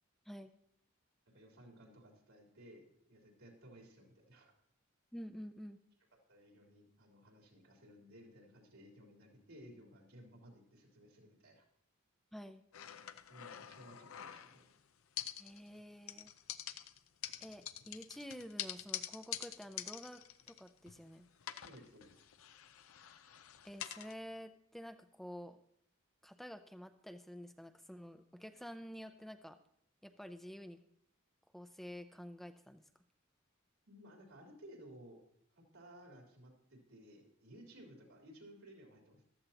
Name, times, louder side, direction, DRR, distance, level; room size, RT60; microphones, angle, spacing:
voice 1, 1.3-4.5 6.3-11.7 13.3-14.7 21.6-22.3 33.9-35.2 35.6-39.2, equal, 80° right, -1 dB, 3.6 m, -58 dB
voice 2, 5.1-5.8 12.3-12.6 15.4-16.3 17.4-21.3 23.6-25.6 26.2-29.6 30.0-30.8 31.5-32.8, equal, ahead, 7 dB, 0.5 m, -49 dB
sound 1, 12.7-14.8 15.2-15.8 16.1-21.1 21.4-24.1, left 11 dB, 85° left, 0.6 m, -46 dB
14.5 x 12.5 x 2.9 m, 0.67 s
head